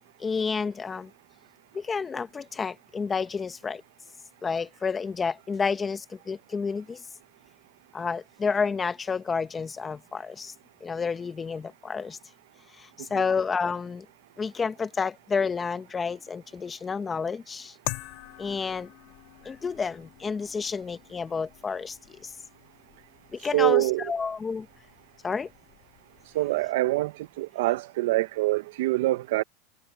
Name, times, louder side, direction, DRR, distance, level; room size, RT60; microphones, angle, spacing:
voice 1, 0.2-1.1 1.7-3.8 4.4-7.0 7.9-10.5 10.8-12.2 12.8-14.0 14.4-17.7 18.4-18.9 19.4-22.3 23.3-24.7 25.2-25.5, left 5 dB, 15° left, 1.3 m, -30 dB
sound 1, 17.8-26.7, left 20 dB, 50° left, 2.1 m, -44 dB
voice 2, 23.5-24.0 26.3-27.1 27.4-29.4, right 18 dB, 70° right, 0.9 m, -24 dB
supercardioid pair, 145°, 0 cm